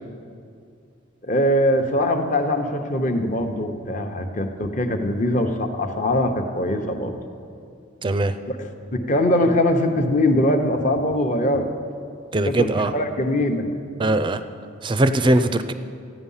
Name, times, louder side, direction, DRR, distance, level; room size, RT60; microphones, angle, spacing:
voice 1, 1.2-7.1 8.5-11.7 12.4-13.7, left 1 dB, 40° left, 5 dB, 0.9 m, -22 dB
voice 2, 8.0-8.3 12.3-12.9 14.0-14.4 14.8-15.7, right 2 dB, 25° right, 11 dB, 0.4 m, -20 dB
15.0 x 9.2 x 5.6 m, 2.4 s
head